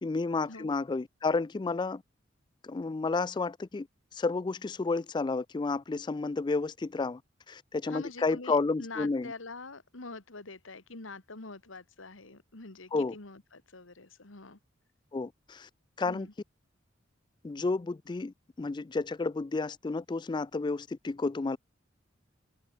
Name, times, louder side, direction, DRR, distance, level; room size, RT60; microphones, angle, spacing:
voice 1, 0.0-2.0 2.6-3.9 4.1-7.2 7.5-9.3 12.9-13.1 15.1-15.7 16.0-16.3 17.4-21.6, left 3 dB, 25° left, 0.3 m, -31 dB
voice 2, 7.9-14.6 16.0-16.3, left 3 dB, 90° left, 2.1 m, -45 dB
head